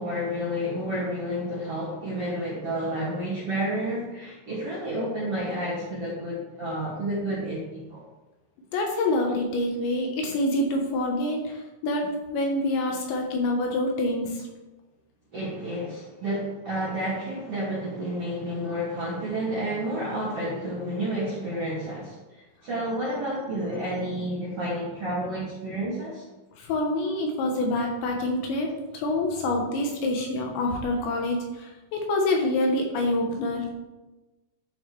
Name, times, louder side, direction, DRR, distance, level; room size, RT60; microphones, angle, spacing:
voice 1, 0.0-8.0 15.3-26.2, right 1 dB, 50° right, -8 dB, 1.9 m, -30 dB
voice 2, 8.7-14.5 26.6-33.7, left 1 dB, 70° left, 1 dB, 3.2 m, -26 dB
11.5 x 5.5 x 4.6 m, 1.1 s
omnidirectional pair, 5.8 m